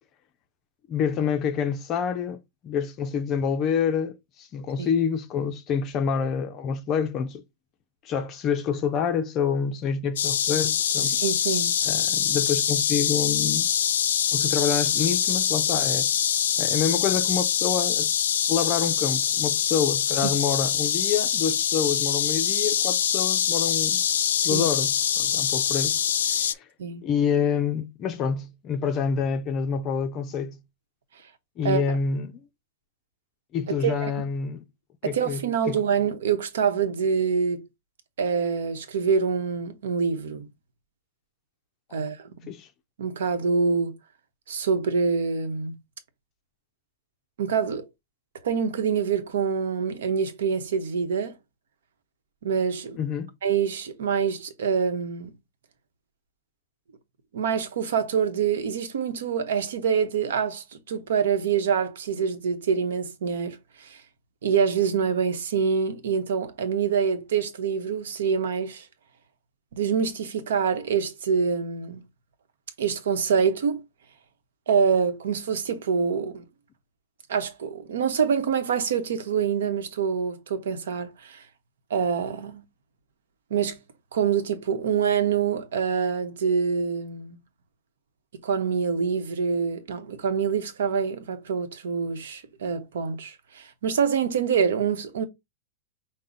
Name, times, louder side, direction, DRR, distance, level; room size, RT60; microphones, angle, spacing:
voice 1, 0.9-2.4 2.6-7.4 8.0-11.1 11.8-13.7 14.3-16.1 16.6-18.1 18.5-24.0 24.4-26.0 26.4-26.6 27.0-30.6 31.6-32.4 33.5-34.6 35.0-35.8 42.5-42.7 53.0-53.3, left 7 dB, 20° left, 0.4 m, -27 dB
sound 1, 10.2-26.5, left 9 dB, 85° left, 0.4 m, -24 dB
voice 2, 11.1-11.7 20.2-20.3 24.5-24.7 26.8-27.0 31.6-31.8 33.8-34.1 35.0-37.6 38.2-40.5 41.9-42.3 43.0-44.0 44.5-45.7 47.4-47.8 48.4-51.3 52.4-53.0 53.4-55.3 57.3-64.0 64.4-68.8 69.7-72.0 72.8-73.8 74.7-76.4 77.3-81.4 81.9-82.6 83.5-83.8 84.1-87.4 88.4-95.3, right 6 dB, 80° right, 0.9 m, -25 dB
5.6 x 2.1 x 3.7 m
supercardioid pair, 175°, 0 cm